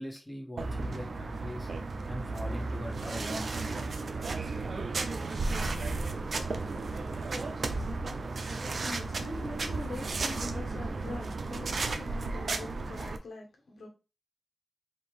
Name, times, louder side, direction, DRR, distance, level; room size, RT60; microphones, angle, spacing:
voice 1, 0.0-1.7 2.1-3.8, left 1 dB, 10° left, 1.4 m, -41 dB
sound 1, 0.6-13.2, right 3 dB, 70° right, 0.5 m, -34 dB
voice 2, 8.8-13.9, left 2 dB, 90° left, 1.2 m, -42 dB
3.6 x 2.7 x 4.5 m
cardioid pair, 60°, 0 cm